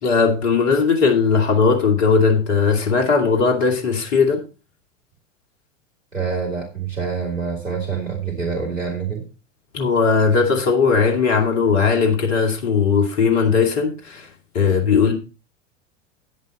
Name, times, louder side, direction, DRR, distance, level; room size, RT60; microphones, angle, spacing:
voice 1, 0.0-4.4 9.7-14.3 14.5-15.1, left 5 dB, 55° left, 2.6 m, -18 dB
voice 2, 6.1-9.3, right 5 dB, 85° right, 2.9 m, -26 dB
10.5 x 9.5 x 4.2 m
figure-of-eight pair, 85°, 38 cm